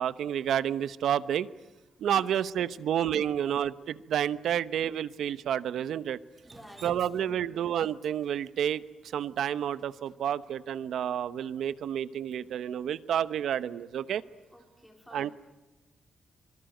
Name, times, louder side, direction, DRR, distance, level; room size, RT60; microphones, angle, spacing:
voice 1, 0.0-1.5 2.0-6.2 6.8-8.8 9.1-14.2 15.1-15.3, right 9 dB, 85° right, 15 dB, 1.0 m, -30 dB
voice 2, 6.4-7.6 14.5-15.3, left 1 dB, 5° left, 3 dB, 3.6 m, -53 dB
Drip, 6.4-10.5, right 3 dB, 30° right, 1.9 m, -54 dB
26.0 x 24.0 x 9.2 m, 1.1 s
cardioid pair, 115°, 0 cm